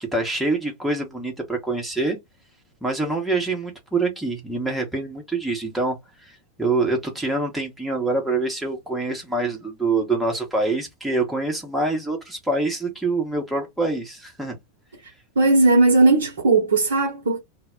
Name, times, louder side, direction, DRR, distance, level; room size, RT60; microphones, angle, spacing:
voice 1, 0.0-2.2 2.8-14.6, right 3 dB, ahead, 0.8 m, -25 dB
voice 2, 15.4-17.4, right 3 dB, 65° right, 0.7 m, -17 dB
2.2 x 2.0 x 3.4 m
figure-of-eight pair, 90°, 0 cm